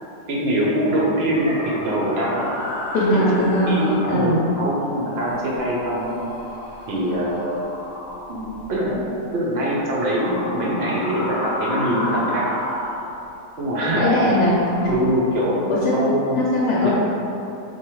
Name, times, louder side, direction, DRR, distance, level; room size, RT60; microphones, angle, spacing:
voice 1, 0.3-2.5 3.1-6.2 6.9-7.5 8.3-9.0 9.3-12.5 13.6-14.1 14.9-15.6 15.9-16.4 16.8-17.0, equal, 55° right, -5 dB, 0.7 m, -23 dB
sound 1, 1.3-4.8 5.1-9.1 10.0-13.6 14.1-15.1, left 1 dB, 65° left, 1.0 m, -32 dB
voice 2, 2.9-4.3 13.8-14.6 15.7-15.9 16.4-17.0, left 1 dB, 85° left, -7 dB, 1.2 m, -20 dB
4.5 x 2.7 x 3.0 m, 2.9 s
omnidirectional pair, 1.7 m